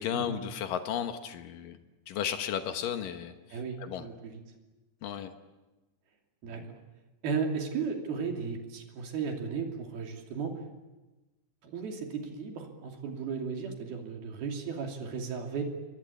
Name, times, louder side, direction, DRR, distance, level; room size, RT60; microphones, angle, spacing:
voice 1, 0.0-1.8 2.1-4.1 5.0-5.3, left 9 dB, 80° left, 7 dB, 1.9 m, -34 dB
voice 2, 3.5-4.4 6.4-6.8 7.2-10.5 11.6-15.6, right 5 dB, 55° right, 3 dB, 4.3 m, -35 dB
28.5 x 24.0 x 8.6 m, 1.1 s
omnidirectional pair, 5.9 m